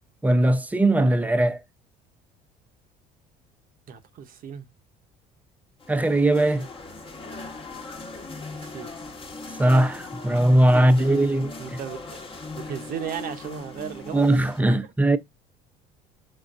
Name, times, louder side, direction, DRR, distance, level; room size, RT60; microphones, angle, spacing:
voice 1, 0.2-1.6 5.9-6.7 9.6-11.5 14.1-15.2, right 1 dB, 10° right, 0.5 m, -19 dB
voice 2, 3.9-4.7 8.5-8.9 10.7-11.2 11.6-14.9, right 9 dB, 55° right, 0.7 m, -36 dB
sound 1, 5.8-14.6, left 3 dB, 30° left, 1.1 m, -39 dB
3.8 x 3.4 x 2.5 m
supercardioid pair, 90°, 18 cm